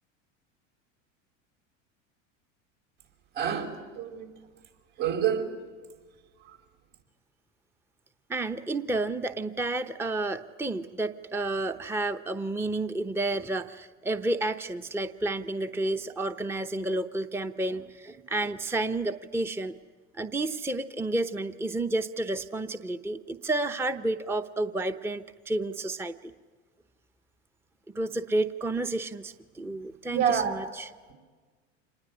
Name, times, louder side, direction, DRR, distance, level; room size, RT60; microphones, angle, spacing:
voice 1, 3.4-4.3 5.0-5.5 30.1-30.5, right 8 dB, 70° right, 5.1 m, -27 dB
voice 2, 8.3-19.7 20.1-26.3 27.9-30.9, right 2 dB, 5° right, 0.8 m, -31 dB
26.5 x 20.5 x 9.8 m
hypercardioid pair, 95°, 38 cm